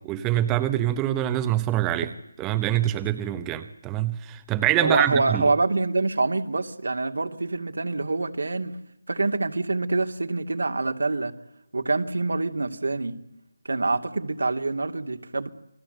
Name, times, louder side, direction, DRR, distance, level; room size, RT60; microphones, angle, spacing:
voice 1, 0.0-2.1 2.4-5.5, right 13 dB, 10° right, 9 dB, 0.9 m, -25 dB
voice 2, 4.8-8.8 9.1-11.3 11.7-13.2 13.6-15.5, right 3 dB, 80° right, 5 dB, 2.6 m, -26 dB
29.0 x 20.5 x 8.0 m, 0.83 s
figure-of-eight pair, 170°, 0 cm